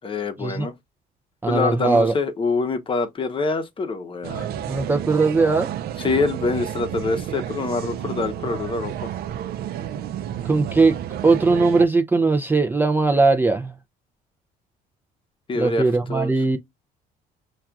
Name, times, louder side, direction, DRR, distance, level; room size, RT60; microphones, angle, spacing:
voice 1, 0.0-0.7 1.4-4.5 6.0-9.1 15.5-16.3, left 3 dB, 30° left, 0.7 m, -25 dB
voice 2, 1.4-2.1 4.7-5.7 10.4-11.0 11.2-13.7 15.5-16.6, right 3 dB, 10° right, 0.4 m, -19 dB
sound 1, 4.2-11.9, right 10 dB, 65° right, 0.5 m, -31 dB
5.7 x 2.3 x 2.3 m
cardioid pair, 110°, 17 cm